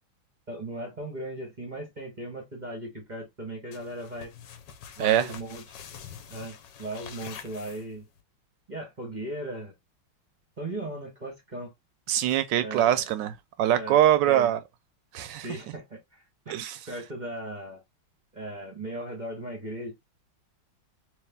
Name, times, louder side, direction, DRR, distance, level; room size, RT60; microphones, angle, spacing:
voice 1, 0.5-4.3 5.0-5.6 6.3-6.5 6.8-8.0 8.7-9.7 10.6-11.7 12.6-13.1 13.7-14.0 14.3-14.5 15.4-16.5 16.9-17.8 18.3-19.9, right 1 dB, 35° right, 0.7 m, -37 dB
sound 1, 3.7-8.2, left 8 dB, 70° left, 1.3 m, -46 dB
voice 2, 5.0-5.3 12.1-14.6 15.1-15.5 16.5-16.8, right 11 dB, 75° right, 1.1 m, -23 dB
3.2 x 3.1 x 3.4 m
omnidirectional pair, 2.3 m